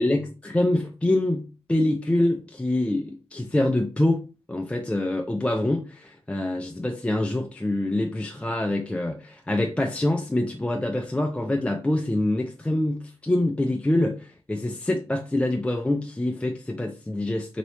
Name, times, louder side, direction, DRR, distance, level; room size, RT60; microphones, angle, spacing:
voice 1, 0.0-4.2 4.5-17.6, left 1 dB, 10° left, 0.3 m, -25 dB
2.9 x 2.8 x 3.1 m
wide cardioid pair, 90°, 11 cm